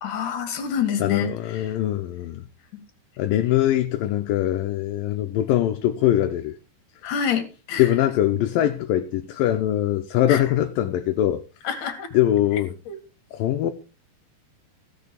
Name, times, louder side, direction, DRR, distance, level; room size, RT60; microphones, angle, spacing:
voice 1, 0.0-1.8 2.7-2.8 7.0-7.9 10.3-10.4 11.6-12.1 12.9-13.0, left 8 dB, 60° left, 3.2 m, -27 dB
voice 2, 1.0-2.5 3.2-6.6 7.8-11.4 12.1-12.7 13.3-13.7, left 12 dB, 75° left, 2.5 m, -22 dB
16.0 x 6.7 x 5.3 m
omnidirectional pair, 4.4 m